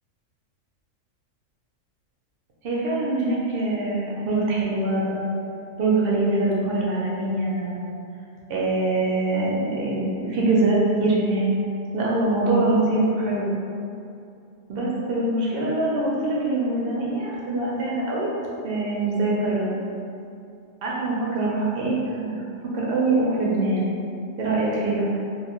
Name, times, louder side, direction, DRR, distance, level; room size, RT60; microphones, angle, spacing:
voice 1, 2.6-5.3 5.8-7.9 8.5-11.5 11.9-13.5 14.7-18.3 18.6-19.8 20.8-22.3 22.7-23.9 24.4-25.1, right 2 dB, 65° right, -5 dB, 0.6 m, -23 dB
2.5 x 2.3 x 2.9 m, 2.5 s
omnidirectional pair, 1.4 m